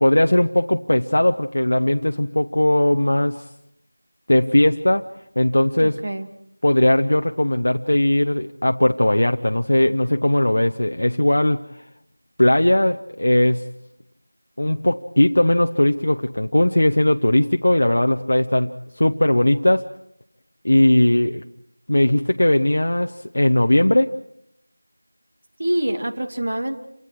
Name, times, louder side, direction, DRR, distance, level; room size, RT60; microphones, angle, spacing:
voice 1, 0.0-3.5 4.3-5.1 5.4-6.0 6.6-11.6 12.4-13.7 14.6-19.9 20.6-21.4 21.9-24.2, left 1 dB, 65° left, 6 dB, 0.9 m, -18 dB
voice 2, 5.8-6.3 25.6-26.8, right 1 dB, 55° right, 7 dB, 2.6 m, -25 dB
29.0 x 27.5 x 4.7 m, 0.75 s
figure-of-eight pair, 175°, 0 cm